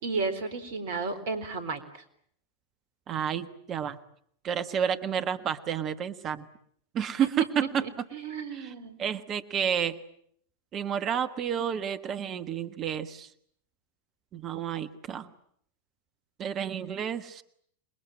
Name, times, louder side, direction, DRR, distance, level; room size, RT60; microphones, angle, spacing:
voice 1, 0.0-2.0 7.2-7.3 7.8-9.0, right 4 dB, 55° right, 11 dB, 3.9 m, -33 dB
voice 2, 3.1-4.0 4.4-6.5 6.9-7.8 8.5-8.7 9.0-10.0 10.7-13.3 14.3-15.3 16.4-17.4, right 8 dB, 30° right, 10 dB, 1.4 m, -30 dB
27.5 x 21.5 x 8.9 m, 0.67 s
figure-of-eight pair, 90°, 0 cm